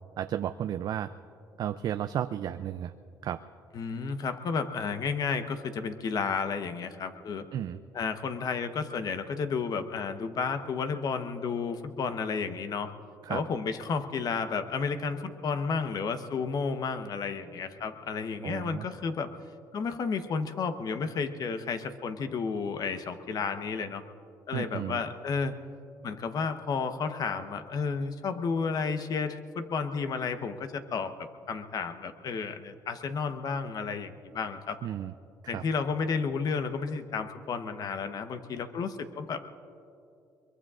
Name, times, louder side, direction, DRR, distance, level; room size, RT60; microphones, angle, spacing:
voice 1, 0.2-1.1 1.6-2.9 3.2-3.4 7.5-7.8 13.2-13.4 18.4-18.9 24.5-25.0 34.8-35.1 35.4-35.6, right 10 dB, 60° right, 10 dB, 0.4 m, -33 dB
voice 2, 3.7-7.5 7.9-12.9 13.3-19.3 19.7-24.0 24.5-25.5 26.0-34.8 35.5-39.4, left 5 dB, 55° left, 8 dB, 1.0 m, -32 dB
23.0 x 22.5 x 2.5 m, 2.6 s
supercardioid pair, 80°, 8 cm